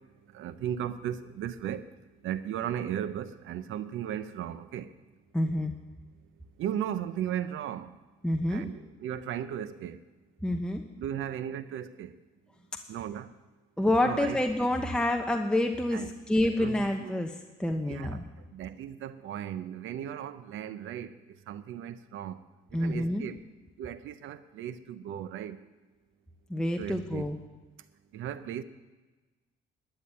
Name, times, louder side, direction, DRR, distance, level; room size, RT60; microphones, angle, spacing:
voice 1, 0.3-1.8 2.2-4.9 6.6-7.9 8.5-10.0 11.0-12.1 12.9-13.3 14.0-14.7 15.9-16.1 16.6-17.1 17.9-18.2 18.5-21.1 21.5-22.4 22.8-23.4 23.8-25.6 26.8-27.3 28.1-28.6, right 10 dB, 80° right, 0.8 m, -36 dB
voice 2, 5.3-5.7 8.2-8.7 10.4-10.8 13.8-17.3 17.6-18.2 22.7-23.3 26.5-27.4, left 1 dB, 5° left, 0.9 m, -28 dB
12.5 x 7.3 x 9.6 m
cardioid pair, 90°, 20 cm